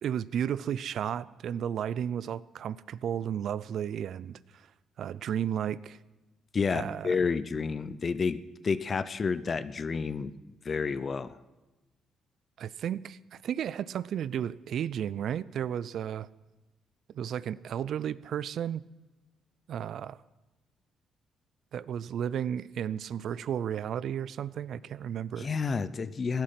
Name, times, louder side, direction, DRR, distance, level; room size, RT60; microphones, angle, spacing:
voice 1, 0.0-4.4 5.0-6.0 6.7-7.2 12.6-16.3 17.1-18.8 19.7-20.2 21.7-25.5, right 9 dB, 65° right, 20 dB, 0.4 m, -33 dB
voice 2, 6.5-10.3 10.6-11.4 25.4-26.4, left 5 dB, 40° left, 15 dB, 0.7 m, -30 dB
16.0 x 10.5 x 5.9 m, 1.1 s
cardioid pair, 90°, 0 cm